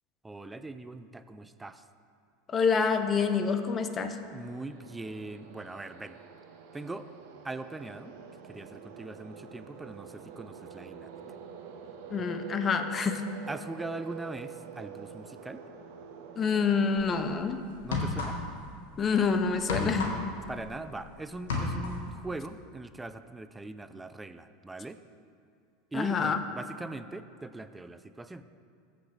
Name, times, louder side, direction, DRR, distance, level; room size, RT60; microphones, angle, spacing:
voice 1, 0.2-1.8 4.3-6.2 6.7-7.1 7.4-8.1 8.5-11.3 13.5-15.6 17.8-18.4 20.5-25.0 25.9-28.4, right 2 dB, 10° right, 11 dB, 0.4 m, -41 dB
voice 2, 2.5-4.2 12.1-13.2 16.4-17.6 19.0-20.1 25.9-26.4, left 5 dB, 30° left, 8 dB, 0.7 m, -27 dB
sound 1, 3.9-17.2, right 7 dB, 65° right, 0.8 m, -47 dB
sound 2, 17.0-17.2 17.8-18.7 18.9-21.1 21.3-22.1, left 3 dB, 80° left, 1.4 m, -32 dB
14.5 x 6.0 x 3.3 m, 2.5 s
hypercardioid pair, 90°, 0 cm